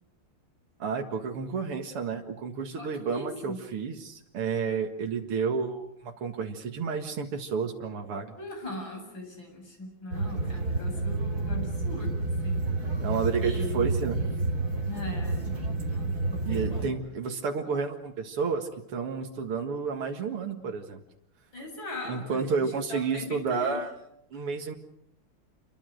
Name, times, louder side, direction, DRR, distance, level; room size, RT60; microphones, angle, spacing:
voice 1, 0.8-8.3 13.0-14.2 16.4-21.0 22.1-23.9 24.3-24.7, right 5 dB, 90° right, 3 dB, 2.8 m, -31 dB
voice 2, 2.8-3.6 8.4-12.1 12.4-12.6 12.9-13.1 13.4-13.9 14.8-15.5 15.9-16.9 21.5-23.8 24.3-24.4, left 2 dB, 60° left, 2 dB, 8.5 m, -40 dB
sound 1, 10.1-16.9, right 2 dB, 45° right, 4.0 m, -29 dB
28.5 x 23.0 x 6.5 m, 0.77 s
omnidirectional pair, 2.4 m